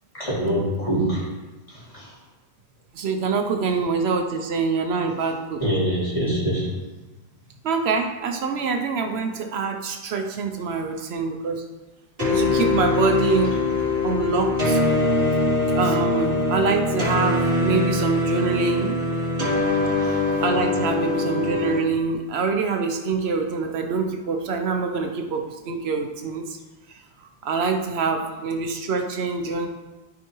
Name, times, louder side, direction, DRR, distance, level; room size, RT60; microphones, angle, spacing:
voice 1, 0.1-1.3 1.7-2.1 5.6-6.8, equal, 30° left, -8 dB, 2.6 m, -24 dB
voice 2, 2.9-5.6 7.6-11.7 12.3-13.6 14.0-14.8 15.7-19.0 20.0-26.6 27.4-29.7, right 4 dB, 75° right, 5 dB, 0.9 m, -25 dB
sound 1, 12.2-21.8, left 2 dB, 60° right, 2.7 m, -23 dB
12.0 x 4.7 x 3.0 m, 1.2 s
omnidirectional pair, 1.1 m